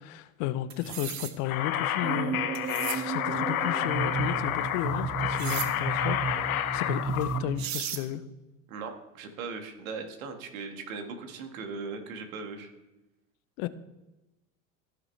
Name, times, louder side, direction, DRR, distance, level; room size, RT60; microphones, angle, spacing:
voice 1, 0.0-8.2 13.6-13.7, left 13 dB, 60° left, 14 dB, 0.8 m, -34 dB
sound 1, 0.7-1.3 2.6-3.0 5.4-5.7 7.2-7.3 7.6-8.0, right 10 dB, 45° right, 1.1 m, -35 dB
sound 2, 1.5-7.4, left 11 dB, 90° left, 0.8 m, -30 dB
sound 3, 2.0-7.7, right 6 dB, 15° right, 0.3 m, -33 dB
voice 2, 8.7-12.7, right 4 dB, 80° right, 5 dB, 1.8 m, -39 dB
16.0 x 6.0 x 3.3 m, 1.0 s
hypercardioid pair, 95°, 41 cm